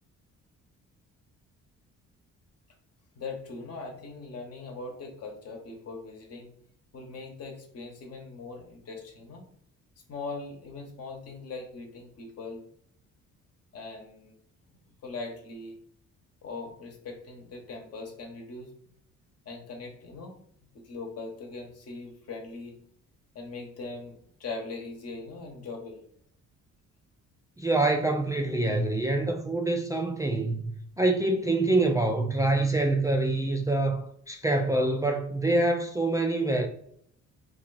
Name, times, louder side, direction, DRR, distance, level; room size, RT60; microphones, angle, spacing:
voice 1, 3.2-6.5 6.9-9.5 10.1-12.6 13.7-14.3 15.0-15.8 16.4-18.7 19.4-20.4 20.7-22.8 23.3-26.0, left 3 dB, 55° left, 1.0 m, -40 dB
voice 2, 27.6-36.7, right 2 dB, 10° right, 0.3 m, -26 dB
2.9 x 2.3 x 4.0 m
cardioid pair, 90°, 30 cm